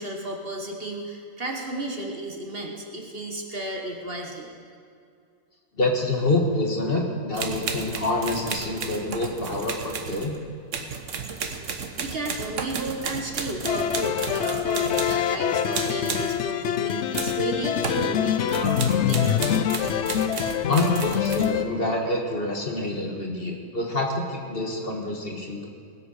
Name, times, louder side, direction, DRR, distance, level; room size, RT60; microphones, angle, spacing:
voice 1, 0.0-4.5 12.0-19.6, right 1 dB, 40° right, 1 dB, 1.5 m, -33 dB
voice 2, 5.8-10.4 20.6-25.7, left 2 dB, 40° left, 1 dB, 1.6 m, -27 dB
sound 1, 7.3-15.4 15.7-16.4 17.1-17.5 17.8-18.1 18.5-21.5, right 6 dB, 60° right, 1.3 m, -33 dB
sound 2, 13.7-21.7, left 9 dB, 65° left, 0.8 m, -25 dB
19.0 x 8.2 x 6.4 m, 2.3 s
omnidirectional pair, 1.6 m